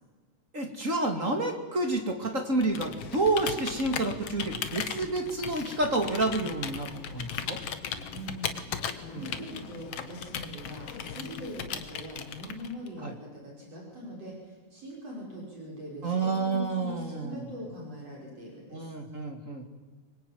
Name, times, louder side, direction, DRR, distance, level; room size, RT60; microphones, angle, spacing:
voice 1, 0.5-7.6 9.1-9.3 13.0-13.1 16.0-17.5 18.7-19.6, right 2 dB, 25° right, 4 dB, 2.2 m, -29 dB
Computer keyboard, 2.6-12.9, left 7 dB, 55° left, 1.9 m, -37 dB
voice 2, 8.0-18.9, equal, 45° right, -3 dB, 7.0 m, -42 dB
25.0 x 22.5 x 9.3 m, 1.4 s
omnidirectional pair, 4.0 m